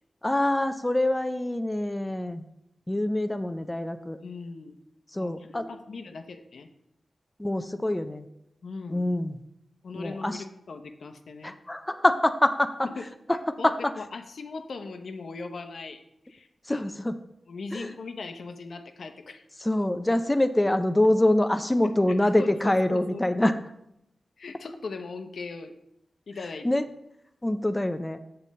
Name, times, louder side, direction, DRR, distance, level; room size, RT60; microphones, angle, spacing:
voice 1, 0.2-2.4 2.9-4.2 5.1-5.6 7.4-8.3 8.9-9.3 9.9-10.4 11.4-12.7 13.5-13.7 16.7-17.2 17.7-17.9 19.6-23.6 26.6-26.8 27.4-28.2, left 1 dB, 15° left, 8 dB, 0.4 m, -25 dB
voice 2, 4.2-4.8 5.1-6.7 8.6-9.1 9.8-11.6 12.8-16.9 17.5-19.4 22.1-23.2 24.4-25.8 26.3-26.8, left 4 dB, 75° left, 7 dB, 0.7 m, -39 dB
7.4 x 6.7 x 4.1 m, 0.80 s
wide cardioid pair, 100°, 0 cm